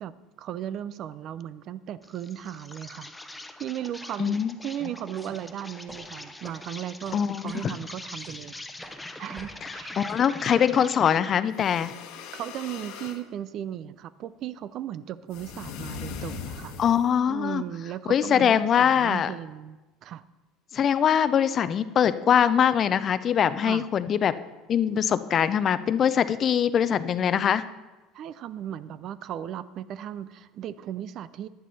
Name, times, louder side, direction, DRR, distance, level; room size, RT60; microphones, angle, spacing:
voice 1, 0.0-8.6 9.2-10.0 12.3-16.8 17.3-20.2 23.6-23.9 28.1-31.5, right 10 dB, 55° right, 16 dB, 0.5 m, -36 dB
Insect, 2.0-11.4, left 2 dB, 10° left, 0.9 m, -43 dB
voice 2, 4.2-4.5 7.1-7.8 10.0-11.9 16.8-17.6 18.1-19.3 20.7-24.3 24.7-27.6, left 8 dB, 45° left, 14 dB, 0.6 m, -23 dB
sound 1, 5.2-5.4 5.9-6.0 6.4-6.7 7.0-7.2 7.5-8.4 8.8-9.0 9.4-10.8, right 1 dB, 10° right, 2.6 m, -48 dB
sound 2, 11.4-13.2 15.3-17.2, left 6 dB, 70° left, 1.2 m, -39 dB
11.0 x 10.5 x 4.2 m, 1.1 s
hypercardioid pair, 80°, 0 cm